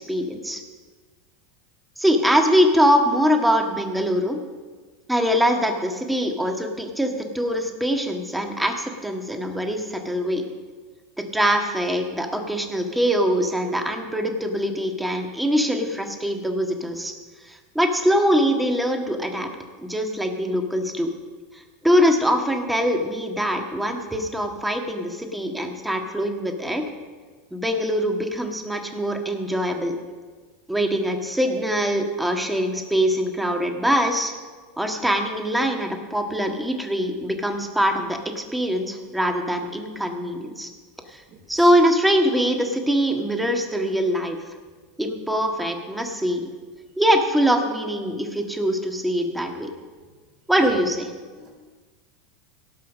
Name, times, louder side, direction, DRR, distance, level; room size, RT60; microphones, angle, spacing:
voice 1, 0.1-0.6 2.0-4.4 5.1-10.4 11.3-17.1 17.5-19.5 19.8-21.1 21.8-26.9 27.5-30.0 30.7-34.3 34.8-40.7 41.1-41.2 41.5-44.4 45.0-46.5 47.0-49.7 50.5-51.1, equal, 5° right, 4 dB, 1.7 m, -23 dB
voice 2, 41.3-41.7 50.6-50.8 51.3-51.5, right 5 dB, 55° right, -7 dB, 4.6 m, -41 dB
17.0 x 5.7 x 6.6 m, 1.4 s
hypercardioid pair, 100°, 0 cm